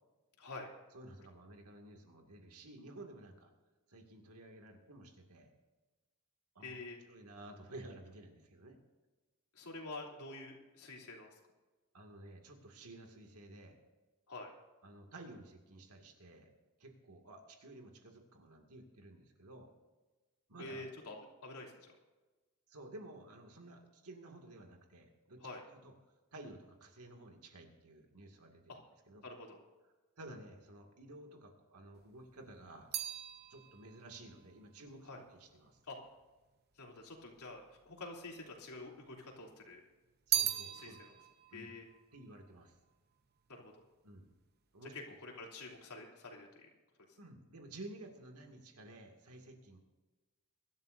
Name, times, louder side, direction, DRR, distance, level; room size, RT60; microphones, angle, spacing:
voice 1, 0.4-0.7 6.6-7.0 9.5-11.3 14.3-14.5 20.6-21.1 21.4-21.9 25.4-25.6 28.7-28.8 29.2-29.6 35.0-35.2 35.9-36.0 36.8-39.8 40.7-41.1 41.5-41.8 43.5-43.7 44.9-46.7, left 2 dB, 85° left, -1 dB, 3.2 m, -48 dB
voice 2, 0.9-3.5 3.9-5.5 6.5-6.8 7.1-8.8 11.9-13.8 14.8-16.5 16.8-19.7 20.5-20.8 22.7-25.4 25.7-25.9 26.3-28.6 29.1-29.2 30.2-32.9 33.5-35.8 40.3-41.2 41.5-41.7 42.1-42.8 44.0-44.3 44.7-44.9 47.2-49.8, right 1 dB, 85° right, 3 dB, 2.2 m, -53 dB
sound 1, 32.0-36.4 37.2-38.0 38.3-39.4 39.7-43.3 43.5-44.1, right 11 dB, 45° right, 0.8 m, -40 dB
23.0 x 13.0 x 2.7 m, 1.2 s
head